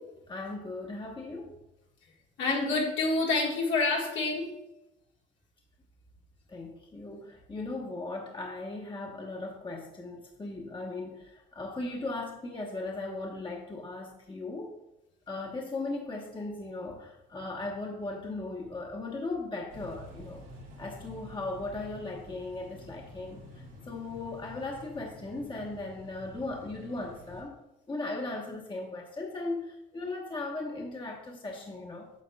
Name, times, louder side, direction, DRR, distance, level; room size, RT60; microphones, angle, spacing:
voice 1, 0.3-1.6 6.5-14.7 15.3-20.4 20.8-27.6 27.9-32.1, left 2 dB, 25° left, -1 dB, 1.2 m, -37 dB
voice 2, 2.4-4.5, left 3 dB, 70° left, -2 dB, 1.9 m, -27 dB
sound 1, 19.7-27.4, left 1 dB, 85° right, 2.2 m, -49 dB
9.2 x 6.2 x 2.4 m, 0.90 s
cardioid pair, 90°, 20 cm